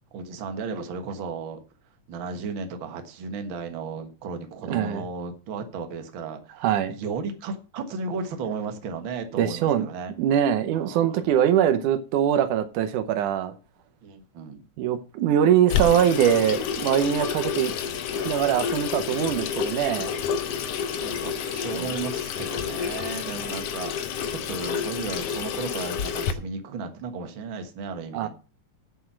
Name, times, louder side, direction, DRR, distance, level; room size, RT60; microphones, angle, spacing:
voice 1, 0.1-1.6 2.1-6.5 6.9-10.1 10.7-11.2 14.0-14.6 20.9-23.9 24.3-28.3, right 4 dB, 50° right, 1.9 m, -34 dB
voice 2, 4.6-5.1 6.6-7.0 9.4-9.9 10.2-13.5 14.8-17.7 18.1-20.1 21.7-21.9 28.1-28.3, right 9 dB, 85° right, 2.4 m, -22 dB
Water tap faucet / Sink (filling or washing), 15.7-26.3, left 7 dB, 65° left, 1.7 m, -29 dB
8.7 x 8.0 x 5.9 m
omnidirectional pair, 3.5 m